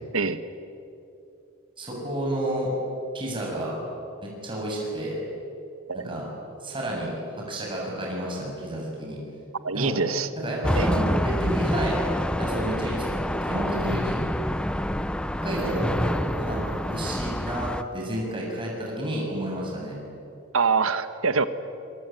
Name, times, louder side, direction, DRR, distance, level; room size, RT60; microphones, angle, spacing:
voice 1, 1.8-2.7 3.1-3.8 4.2-5.2 5.9-6.3 6.6-7.1 7.4-9.2 9.7-9.9 10.4-12.0 12.4-14.2 15.4-20.0, right 1 dB, 25° right, -3 dB, 7.1 m, -30 dB
voice 2, 9.6-10.3 10.7-10.9 20.5-21.5, right 4 dB, 85° right, 12 dB, 1.3 m, -24 dB
sound 1, 10.6-17.8, equal, 5° left, 0.6 m, -27 dB
25.5 x 23.0 x 9.2 m, 2.7 s
head